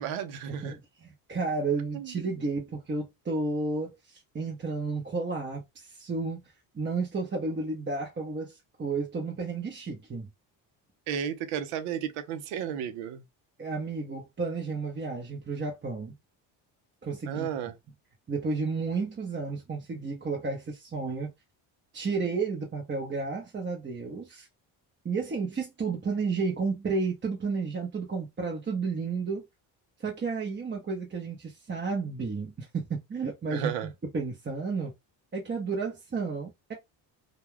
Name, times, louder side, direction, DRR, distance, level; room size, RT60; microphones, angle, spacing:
voice 1, 0.0-0.8 1.9-2.3 11.1-13.2 17.3-17.8 33.5-33.9, right 8 dB, 85° right, 0.7 m, -33 dB
voice 2, 0.6-10.3 13.6-16.1 17.0-17.5 18.3-21.3 21.9-24.5 25.0-29.4 30.0-33.7 34.1-34.9 35.3-36.7, right 4 dB, 25° right, 0.7 m, -32 dB
2.3 x 2.2 x 3.2 m
supercardioid pair, 80°, 48 cm